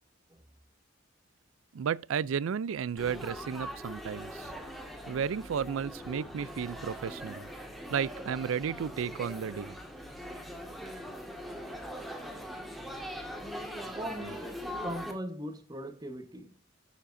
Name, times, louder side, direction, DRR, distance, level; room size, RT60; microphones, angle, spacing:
voice 1, 1.7-4.5 5.1-7.5 7.9-9.7, right 7 dB, 85° right, 0.4 m, -33 dB
Laughter / Chatter / Crowd, 3.0-15.1, equal, ahead, 1.7 m, -41 dB
voice 2, 13.9-14.6 14.8-16.5, equal, 20° right, 1.1 m, -39 dB
11.5 x 7.5 x 2.6 m
head